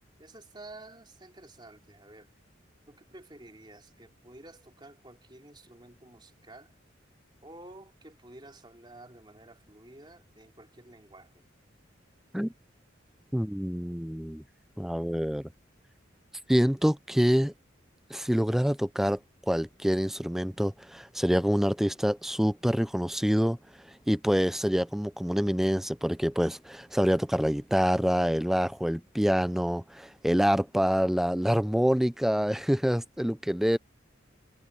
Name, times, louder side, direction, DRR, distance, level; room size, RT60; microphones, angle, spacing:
voice 1, 0.2-2.3 2.9-6.7 7.4-11.4, right 2 dB, 25° right, 3.8 m, -51 dB
voice 2, 13.3-14.4 14.8-15.5 16.5-17.5 18.1-19.2 19.5-23.6 24.1-33.8, equal, ahead, 0.4 m, -26 dB
head